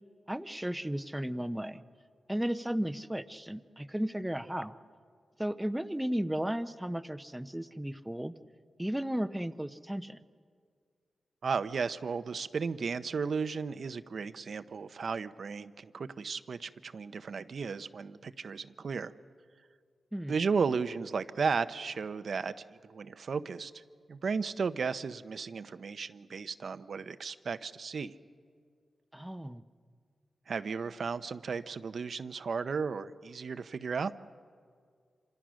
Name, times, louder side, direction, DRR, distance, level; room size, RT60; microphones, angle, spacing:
voice 1, 0.3-1.8 2.3-4.7 5.4-8.3 8.8-10.2 20.1-20.3 29.1-29.6, equal, 5° right, 12 dB, 0.9 m, -34 dB
voice 2, 11.4-19.1 20.3-23.8 24.1-28.1 30.5-34.1, right 5 dB, 65° right, 11 dB, 0.8 m, -34 dB
27.0 x 26.5 x 6.4 m, 2.1 s
cardioid pair, 85°, 0 cm